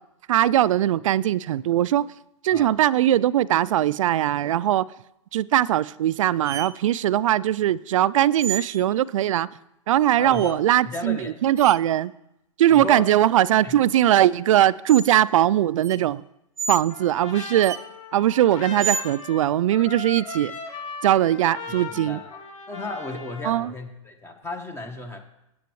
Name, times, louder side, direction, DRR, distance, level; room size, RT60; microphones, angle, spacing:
voice 1, 0.3-2.1 2.4-4.9 5.3-9.5 9.9-12.1 12.6-16.2 16.7-17.8 18.1-20.5 21.0-22.2 23.4-23.7, right 12 dB, 70° right, 0.4 m, -20 dB
sound 1, 6.4-6.7 8.4-8.9 10.3-10.5 11.6-11.8 12.7-12.8 14.1-14.2 14.9-15.1 15.8-16.0 16.6-16.8 17.6-17.8 18.8-19.1, right 5 dB, 15° right, 0.7 m, -30 dB
voice 2, 10.2-10.6 10.8-11.3 12.7-13.1 13.6-13.8 21.9-22.4 22.7-25.2, left 2 dB, 15° left, 1.2 m, -34 dB
Trumpet, 16.9-23.6, left 3 dB, 70° left, 2.1 m, -38 dB
15.0 x 8.5 x 3.1 m
hypercardioid pair, 120°, 17 cm